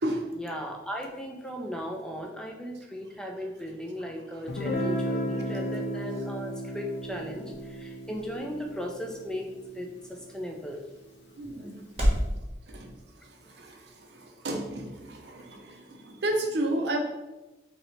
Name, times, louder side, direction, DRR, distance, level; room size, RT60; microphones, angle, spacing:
voice 1, 0.4-9.5 9.7-10.8 11.6-11.7, equal, 5° left, 1 dB, 0.4 m, -37 dB
Guitar, 4.5-10.2, equal, 75° left, 0.7 m, -34 dB
sound 1, 6.1-12.3, equal, 35° right, 0.9 m, -35 dB
voice 2, 11.4-11.8 12.7-12.9 13.2-17.0, right 1 dB, 65° right, 3 dB, 0.6 m, -32 dB
3.1 x 2.9 x 4.0 m, 1.1 s
head